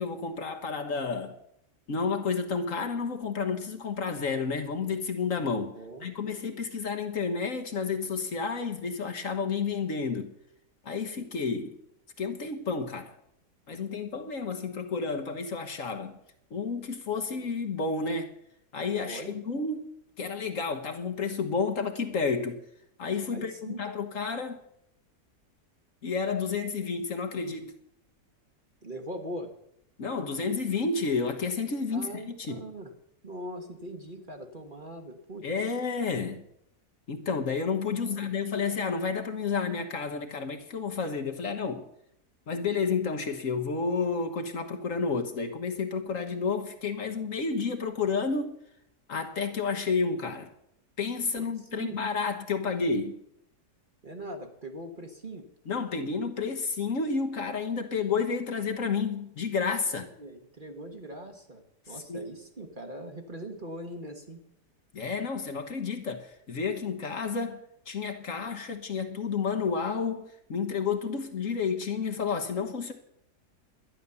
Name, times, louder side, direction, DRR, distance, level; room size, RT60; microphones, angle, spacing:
voice 1, 0.0-1.4 1.9-10.3 10.8-11.8 12.2-13.1 13.7-16.2 16.5-18.3 18.7-22.6 23.0-24.6 26.0-27.8 30.0-32.6 35.4-36.4 37.1-41.9 42.5-48.5 49.1-50.5 51.0-53.2 55.7-60.1 61.9-62.3 64.9-70.2 70.5-72.9, left 5 dB, 55° left, 1.5 m, -31 dB
voice 2, 5.7-6.1 19.0-19.4 23.3-23.8 28.8-29.5 31.9-32.9 33.2-35.5 37.8-38.3 51.4-51.5 51.7-52.0 54.0-55.5 59.9-64.4, right 1 dB, 30° right, 1.4 m, -41 dB
12.5 x 10.0 x 6.9 m
omnidirectional pair, 1.8 m